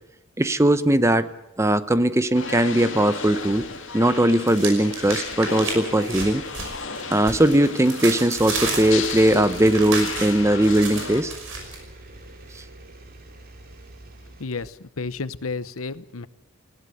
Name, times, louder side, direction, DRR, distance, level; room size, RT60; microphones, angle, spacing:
voice 1, 0.4-1.3 1.6-3.7 3.9-6.4 7.1-11.3, right 1 dB, 15° right, 13 dB, 0.7 m, -19 dB
sound 1, 2.4-11.2, left 4 dB, 60° left, 2.7 m, -34 dB
sound 2, 2.8-3.6 3.9-11.8, right 4 dB, 65° right, 5.8 m, -33 dB
sound 3, 8.3-14.5, right 2 dB, 45° right, 3.1 m, -44 dB
voice 2, 14.4-16.3, left 4 dB, 85° left, 15 dB, 0.9 m, -32 dB
19.5 x 16.5 x 9.5 m, 0.87 s
head